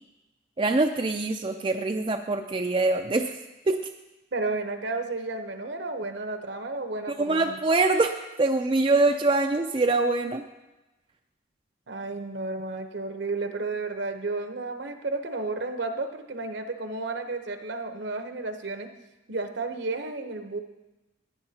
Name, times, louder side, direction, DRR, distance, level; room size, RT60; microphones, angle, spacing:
voice 1, 0.6-3.3 3.7-3.8 7.2-10.4, right 3 dB, 25° right, 5 dB, 0.4 m, -24 dB
voice 2, 4.3-7.6 11.9-18.9 19.3-20.6, right 3 dB, 65° right, 7 dB, 0.9 m, -32 dB
16.0 x 9.6 x 2.8 m, 1.0 s
head